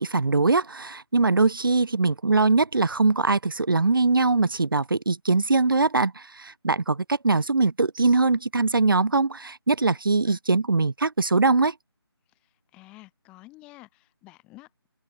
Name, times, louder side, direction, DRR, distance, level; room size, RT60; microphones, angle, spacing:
voice 1, 0.0-11.7, right 3 dB, 55° right, 3.9 m, -22 dB
voice 2, 12.3-14.7, left 20 dB, 5° left, 6.6 m, -50 dB
open air
figure-of-eight pair, 175°, 14 cm